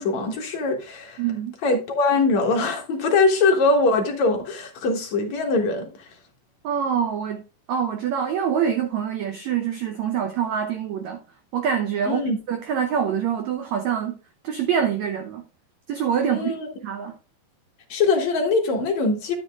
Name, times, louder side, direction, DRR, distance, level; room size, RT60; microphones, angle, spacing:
voice 1, 0.0-1.2 1.6-5.9 12.1-12.4 16.2-16.7 17.9-19.3, left 3 dB, 60° left, 2.4 m, -22 dB
voice 2, 1.2-1.5 6.6-7.4 7.7-11.2 11.5-12.2 12.5-14.2 14.4-15.4 15.9-16.6 16.8-17.2, right 8 dB, 80° right, 1.6 m, -25 dB
12.0 x 8.3 x 2.4 m
omnidirectional pair, 4.2 m